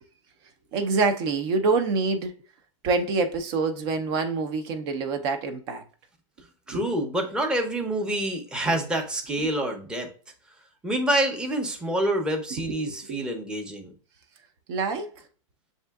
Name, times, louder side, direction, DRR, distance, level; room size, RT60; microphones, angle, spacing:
voice 1, 0.7-2.3 2.8-5.8 6.7-6.9 7.1-7.2 8.7-8.8 9.4-9.5 12.5-13.2 14.7-15.2, right 4 dB, 50° right, 0.7 m, -26 dB
voice 2, 6.7-10.1 10.8-13.9, right 1 dB, 5° right, 0.7 m, -27 dB
7.2 x 2.7 x 2.3 m
hypercardioid pair, 120°, 17 cm